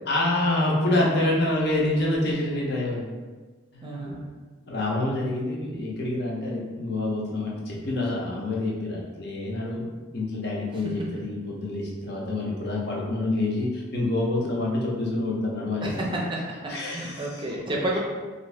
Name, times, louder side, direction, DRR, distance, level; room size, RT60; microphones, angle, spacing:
voice 1, 0.1-3.0 3.7-4.2 4.7-9.8 10.1-16.1 16.7-17.4, left 2 dB, 50° left, -3 dB, 0.7 m, -27 dB
voice 2, 3.8-4.2 15.8-18.0, right 1 dB, 25° right, -2 dB, 0.5 m, -30 dB
2.9 x 2.6 x 3.2 m, 1.4 s
head